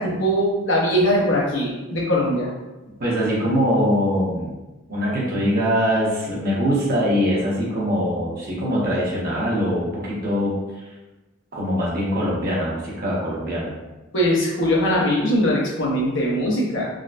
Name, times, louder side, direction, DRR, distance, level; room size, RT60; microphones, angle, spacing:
voice 1, 0.0-2.5 14.1-16.9, equal, 90° left, -4 dB, 0.9 m, -21 dB
voice 2, 3.0-4.5 4.9-10.8 11.5-13.7, equal, 50° right, -6 dB, 1.0 m, -22 dB
3.7 x 2.2 x 2.5 m, 1.1 s
head